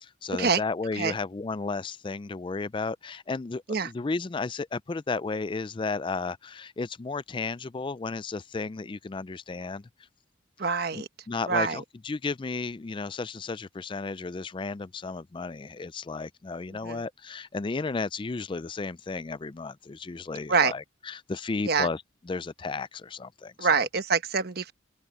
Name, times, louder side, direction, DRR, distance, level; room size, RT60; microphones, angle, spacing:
voice 1, 0.0-9.9 10.9-23.9, left 4 dB, 25° left, 0.4 m, -33 dB
voice 2, 10.6-11.1 11.5-11.8 16.8-17.0 20.5-20.7 21.7-21.9 23.6-24.7, right 5 dB, 50° right, 1.1 m, -25 dB
head